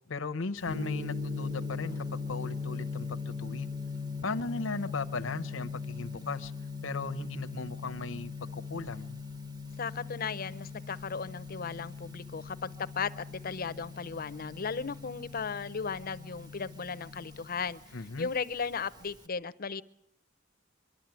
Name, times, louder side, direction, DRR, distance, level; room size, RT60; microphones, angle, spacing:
voice 1, 0.1-3.7 4.2-6.5 6.8-9.2 17.9-18.3, left 3 dB, 80° left, 0.8 m, -37 dB
Gong, 0.6-19.2, left 4 dB, 20° right, 1.1 m, -40 dB
voice 2, 9.8-17.8 18.2-19.8, left 5 dB, 50° left, 0.7 m, -36 dB
24.0 x 12.0 x 9.0 m
head